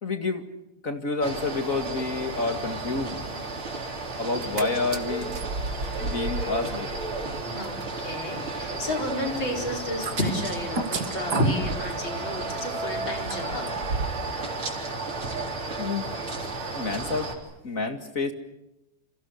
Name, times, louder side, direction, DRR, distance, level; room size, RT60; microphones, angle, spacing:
voice 1, 0.0-0.5 0.8-3.2 4.2-5.3 6.0-6.9 15.8-16.1 16.7-17.3 17.6-18.3, left 3 dB, 40° left, 6 dB, 2.5 m, -29 dB
sound 1, 1.2-17.3, right 3 dB, 75° right, 4.8 m, -33 dB
sound 2, 4.2-4.6 4.9-14.3 14.6-14.7, right 3 dB, 50° right, 2.5 m, -35 dB
voice 2, 7.5-13.7, left 1 dB, 60° left, 2 dB, 5.5 m, -31 dB
29.5 x 26.5 x 6.7 m, 0.86 s
omnidirectional pair, 2.4 m